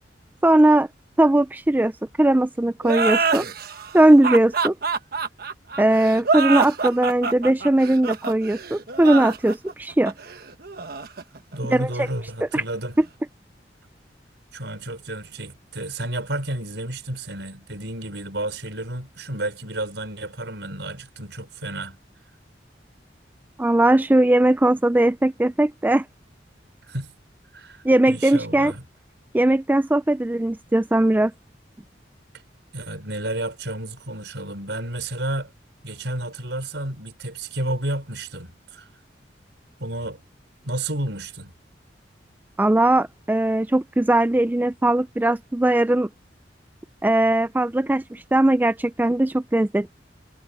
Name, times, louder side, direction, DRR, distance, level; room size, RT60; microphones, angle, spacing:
voice 1, 0.4-0.9 1.2-1.9 2.2-3.5 3.9-4.7 5.8-10.1 11.7-12.1 12.5-12.6 13.0-13.1 23.6-26.1 27.8-28.7 29.3-31.3 42.6-46.1 47.0-49.9, right 1 dB, 10° right, 0.4 m, -19 dB
sound 1, 2.8-12.1, right 4 dB, 55° right, 1.2 m, -26 dB
voice 2, 11.5-12.9 14.5-22.0 26.8-27.1 27.5-28.8 32.7-35.5 35.8-38.9 39.8-40.2 40.6-41.5, right 1 dB, 75° right, 6.2 m, -31 dB
head